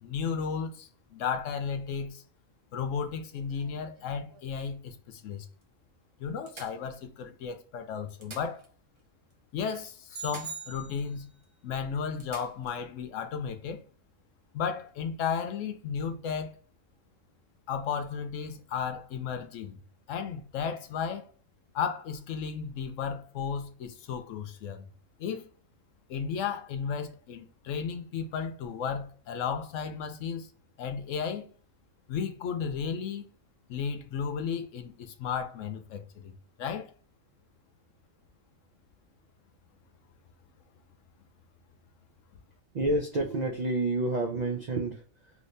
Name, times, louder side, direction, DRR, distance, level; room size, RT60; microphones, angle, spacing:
voice 1, 0.0-2.2 2.7-5.5 6.2-8.6 9.5-11.2 11.6-13.8 14.5-16.6 17.7-19.8 20.1-21.3 21.7-24.9 25.2-25.5 26.1-30.5 30.8-31.5 32.1-33.3 33.7-36.3 36.6-36.9, left 6 dB, 70° left, 0.9 m, -34 dB
sound 1, 2.9-4.6 5.2-5.3 5.6-5.7 6.5-7.5 8.0-9.1 9.3-9.4 10.2-11.1 11.4-11.5 12.2-12.8 14.7-14.9, right 3 dB, 30° right, 0.5 m, -51 dB
sound 2, 10.1-11.4, right 5 dB, 55° right, 1.2 m, -42 dB
voice 2, 42.7-45.3, right 2 dB, 85° right, 0.3 m, -29 dB
3.0 x 2.7 x 3.2 m
omnidirectional pair, 1.4 m